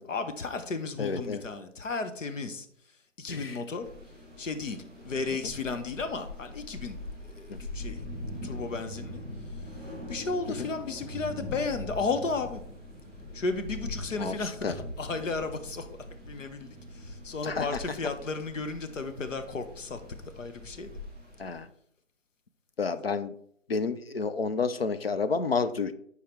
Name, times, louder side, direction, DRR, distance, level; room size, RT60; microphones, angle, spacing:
voice 1, 0.1-2.7 3.2-3.8 4.4-7.0 7.3-8.1 8.4-9.2 10.1-12.6 13.3-15.9 16.3-20.0 20.4-21.0, left 4 dB, 80° left, 8 dB, 1.0 m, -34 dB
voice 2, 1.0-1.4 3.3-3.6 7.5-7.7 10.5-10.7 14.2-14.7 17.4-17.7 21.4-21.7 22.8-23.3 23.7-25.9, left 4 dB, 55° left, 11 dB, 0.5 m, -30 dB
sound 1, 3.8-21.6, left 1 dB, ahead, 2.0 m, -42 dB
5.3 x 4.7 x 4.4 m, 0.65 s
hypercardioid pair, 180°, 38 cm